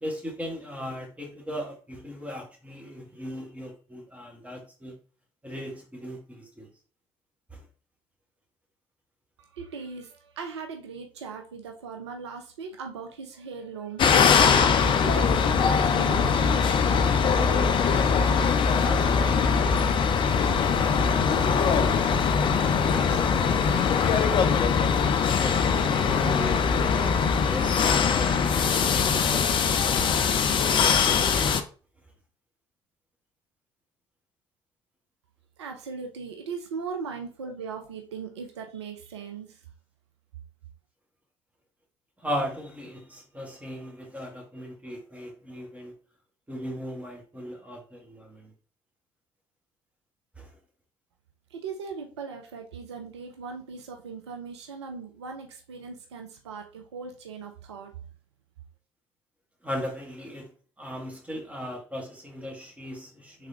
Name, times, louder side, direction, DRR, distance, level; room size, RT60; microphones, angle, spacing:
voice 1, 0.0-5.0 5.4-6.7 7.5-7.7 17.3-20.1 20.4-22.2 22.8-24.4 25.4-28.5 28.9-29.5 42.2-45.9 46.5-48.5 50.4-50.5 59.6-60.5 60.8-63.5, equal, 10° right, 1.4 m, -38 dB
voice 2, 9.4-14.1 14.4-16.2 35.6-39.6 51.5-57.9, right 5 dB, 75° right, 0.4 m, -39 dB
sound 1, 14.0-31.6, left 6 dB, 35° left, 0.4 m, -22 dB
3.4 x 3.3 x 2.7 m
figure-of-eight pair, 50°, 14 cm